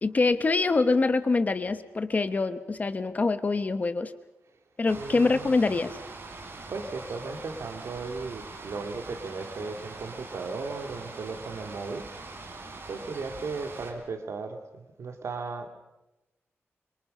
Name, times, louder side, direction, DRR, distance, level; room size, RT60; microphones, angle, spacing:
voice 1, 0.0-4.1 4.8-6.0, left 3 dB, 35° left, 11 dB, 1.0 m, -25 dB
sound 1, 4.9-13.9, right 3 dB, 55° right, 4.6 m, -43 dB
voice 2, 4.9-5.6 6.7-12.1 12.9-14.6 15.0-15.7, right 4 dB, 85° right, 5 dB, 2.4 m, -36 dB
27.5 x 24.5 x 5.6 m, 0.96 s
wide cardioid pair, 160°, 5 cm